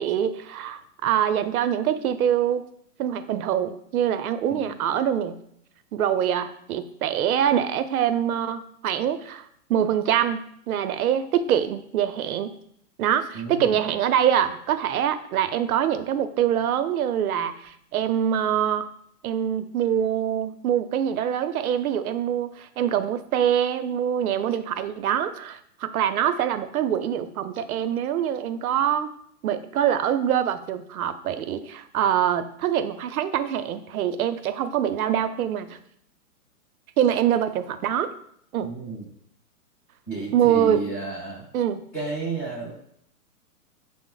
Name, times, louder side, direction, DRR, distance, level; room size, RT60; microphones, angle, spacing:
voice 1, 0.0-2.7 3.0-5.4 5.9-9.4 9.7-12.6 13.0-18.9 19.2-29.1 29.4-35.8 37.0-38.1 38.5-38.7 40.3-40.8 41.5-41.8, right 9 dB, 65° right, 10 dB, 0.5 m, -24 dB
voice 2, 13.3-13.8 38.6-39.0 40.1-41.4 41.9-42.7, right 3 dB, 10° left, -7 dB, 0.5 m, -32 dB
5.8 x 2.0 x 3.7 m, 0.69 s
hypercardioid pair, 150°, 47 cm